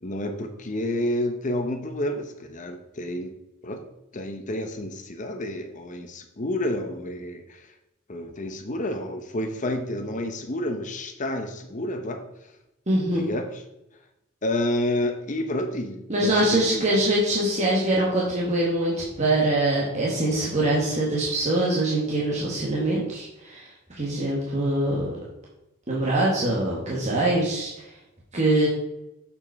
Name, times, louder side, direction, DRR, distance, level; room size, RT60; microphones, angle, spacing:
voice 1, 0.0-3.4 3.6-3.8 4.1-7.7 8.1-12.2 13.1-13.6 14.4-17.0, left 1 dB, 35° left, 6 dB, 0.8 m, -30 dB
voice 2, 12.9-13.2 16.1-23.7 24.0-25.1 25.9-27.8 28.3-28.7, right 1 dB, 35° right, -5 dB, 1.6 m, -23 dB
7.0 x 5.6 x 4.7 m, 0.90 s
head